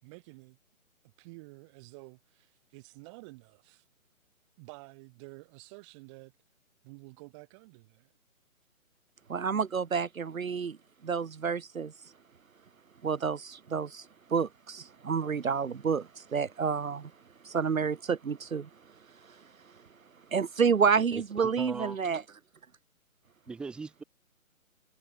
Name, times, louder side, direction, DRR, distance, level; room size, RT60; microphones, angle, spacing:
voice 1, 0.0-0.6 1.0-3.8 4.6-6.3 6.8-8.1, right 27 dB, 20° right, 5.5 m, -50 dB
voice 2, 9.3-10.8 11.0-11.9 13.0-17.1 17.4-18.7 20.3-22.2, right 6 dB, 70° right, 0.9 m, -29 dB
voice 3, 21.0-22.0 23.5-24.0, right 4 dB, ahead, 1.1 m, -39 dB
figure-of-eight pair, 140°, 43 cm